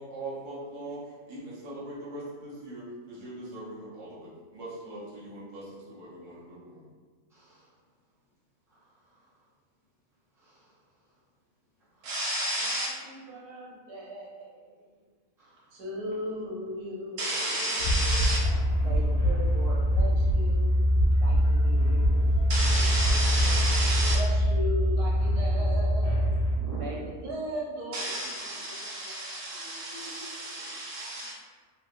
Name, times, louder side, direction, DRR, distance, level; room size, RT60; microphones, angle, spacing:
voice 1, 0.0-6.8, right 1 dB, 40° right, -8 dB, 0.8 m, -41 dB
voice 2, 7.3-7.7 8.7-8.8 9.2-9.3 10.4-10.7 11.9-12.1 15.4-15.7 29.9-30.5, right 1 dB, ahead, -12 dB, 1.0 m, -54 dB
voice 3, 12.0-14.5 15.7-18.4 18.8-20.8 21.2-26.3 26.6-31.3, right 1 dB, 80° right, -5 dB, 1.3 m, -34 dB
sound 1, 17.8-26.6, equal, 75° left, 1.1 m, -24 dB
3.0 x 2.9 x 2.5 m, 1.5 s
omnidirectional pair, 1.6 m